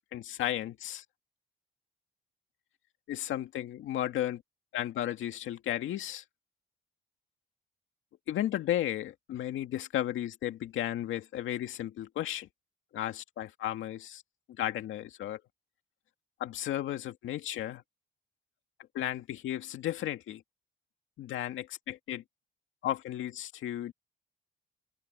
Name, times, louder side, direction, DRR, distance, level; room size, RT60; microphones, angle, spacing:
voice 1, 0.1-1.0 3.1-4.4 4.7-6.2 8.3-12.5 12.9-14.2 14.6-15.4 16.4-17.8 18.9-20.4 21.2-22.2 22.8-23.9, left 12 dB, 80° left, 2.2 m, -34 dB
cardioid pair, 90°, 20 cm